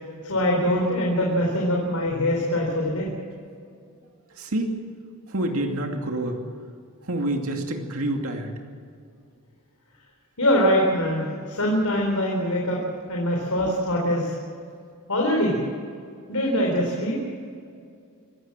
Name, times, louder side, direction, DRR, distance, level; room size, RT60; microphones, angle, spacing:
voice 1, 0.2-3.1 10.4-12.8 13.1-14.3 15.1-15.6 16.3-17.2, equal, 80° left, -1 dB, 4.1 m, -23 dB
voice 2, 4.3-4.8 5.3-6.6 7.0-8.6 17.7-17.8, right 1 dB, 70° right, 2 dB, 2.5 m, -28 dB
26.0 x 16.0 x 7.5 m, 2.3 s
head